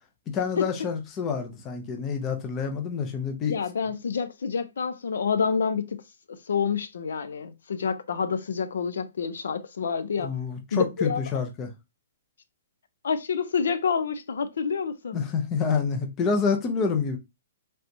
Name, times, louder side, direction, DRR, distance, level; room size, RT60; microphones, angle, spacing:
voice 1, 0.3-3.6 10.2-11.7 15.1-17.2, left 5 dB, 15° left, 0.5 m, -28 dB
voice 2, 3.5-6.0 6.3-10.3 10.7-11.2 13.0-15.2, left 6 dB, 80° left, 0.4 m, -28 dB
3.3 x 2.8 x 2.6 m
hypercardioid pair, 175°, 0 cm